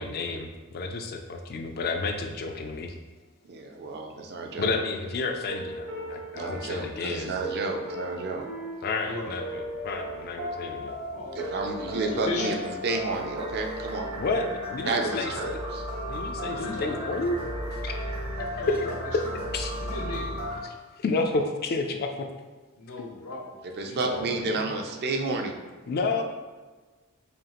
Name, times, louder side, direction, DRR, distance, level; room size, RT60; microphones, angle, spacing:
voice 1, 0.0-3.0 4.6-7.3 8.8-11.0 14.2-15.6 16.1-17.4 17.7-18.8 19.1-19.2 19.5-19.7 20.6-22.3 24.0-24.7 25.9-26.2, left 3 dB, 45° left, 4 dB, 0.3 m, -31 dB
voice 2, 3.4-4.7 6.3-8.5 11.3-12.5 12.8-14.1 14.9-15.8 23.8-25.5, right 3 dB, 45° right, 3 dB, 0.4 m, -31 dB
sound 1, 5.5-20.6, equal, 80° right, 1.1 m, -35 dB
voice 3, 11.1-11.5 11.9-12.5 14.8-15.2 16.5-17.0 18.6-18.9 19.3-19.4 19.8-20.3 22.8-23.6 23.8-24.0, left 2 dB, 75° left, 0 dB, 0.8 m, -35 dB
5.1 x 2.4 x 2.9 m, 1.3 s
head